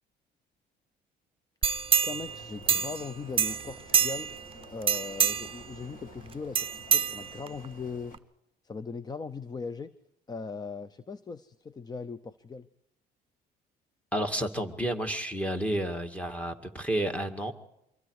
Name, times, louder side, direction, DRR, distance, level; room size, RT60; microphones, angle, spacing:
sound 1, 1.6-3.1 3.4-4.4 4.8-5.6 6.5-7.7 8.1-8.2, right 7 dB, 30° right, 0.7 m, -26 dB
voice 1, 2.0-4.3 4.7-8.2 8.6-9.9 10.3-12.7, left 4 dB, 25° left, 14 dB, 0.8 m, -39 dB
sound 2, 2.2-8.2, left 4 dB, 55° left, 2.5 m, -52 dB
voice 2, 14.1-17.5, right 1 dB, 10° left, 5 dB, 2.1 m, -31 dB
26.0 x 23.0 x 4.9 m, 0.82 s
cardioid pair, 110°, 17 cm